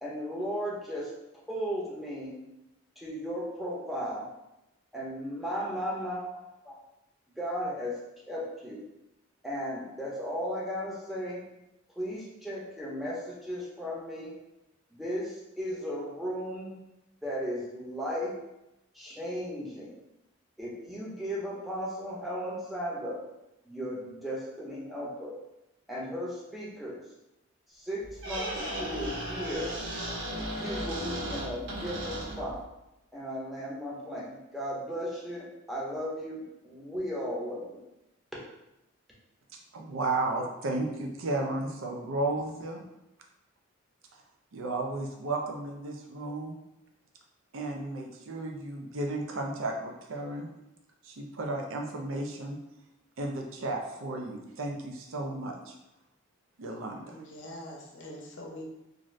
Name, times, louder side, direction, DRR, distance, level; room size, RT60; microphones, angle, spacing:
voice 1, 0.0-2.3 3.0-4.3 4.9-6.8 7.4-7.9 8.3-8.8 9.4-11.4 12.0-14.3 14.9-16.8 17.2-18.3 18.9-19.9 20.6-23.2 23.6-25.4 25.9-27.0 27.7-29.7 30.5-32.6 33.1-37.8, equal, ahead, -6 dB, 0.6 m, -36 dB
Squeak, 28.0-32.6, right 1 dB, 65° right, 1.0 m, -35 dB
voice 2, 39.7-42.8 44.5-46.6 47.5-50.5 51.0-52.6 53.2-55.7 56.6-57.1, right 2 dB, 85° right, 2 dB, 0.5 m, -33 dB
voice 3, 57.1-58.6, left 1 dB, 65° left, 0 dB, 0.6 m, -43 dB
2.5 x 2.5 x 3.1 m, 0.91 s
head